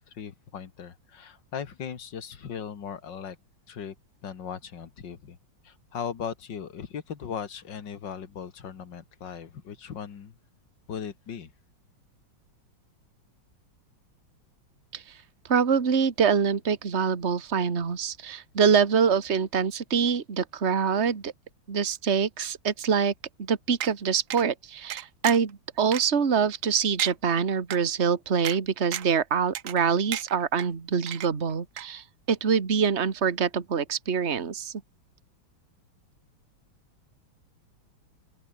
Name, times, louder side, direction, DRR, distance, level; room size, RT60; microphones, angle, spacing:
voice 1, 0.1-3.4 3.7-4.0 4.2-5.4 5.6-10.3 10.9-11.5, left 7 dB, 60° left, 2.5 m, -38 dB
voice 2, 15.5-21.3 21.7-23.1 23.4-34.7, right 6 dB, 35° right, 2.0 m, -25 dB
sound 1, 23.8-23.9 24.3-24.4 24.9-25.5 25.9-26.0 26.5-26.6 27.0-27.1 27.7-27.8 28.4-28.6 28.9-29.2 29.5-29.8 30.1-30.7 31.1-31.5 31.8-31.9, right 11 dB, 70° right, 0.7 m, -34 dB
omnidirectional pair, 2.2 m